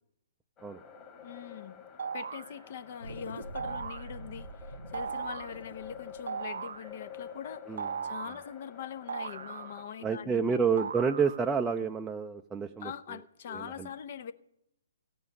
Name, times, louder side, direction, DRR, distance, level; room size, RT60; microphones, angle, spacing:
sound 1, 0.6-9.8, left 7 dB, 25° left, 2.0 m, -49 dB
voice 1, 1.2-1.8 2.1-7.7 8.0-10.6 12.8-14.3, left 8 dB, 50° left, 12 dB, 0.8 m, -43 dB
sound 2, 2.0-2.5 3.5-4.1 4.9-5.5 6.3-6.9 7.8-8.5 9.1-10.0 10.8-11.6, right 6 dB, 65° right, 0.4 m, -38 dB
sound 3, 3.0-7.7, right 2 dB, 85° right, 0.8 m, -46 dB
voice 2, 10.0-12.9 13.5-13.9, right 5 dB, 10° right, 3 dB, 0.5 m, -29 dB
15.0 x 5.6 x 9.9 m, 0.81 s
figure-of-eight pair, 130°, 0 cm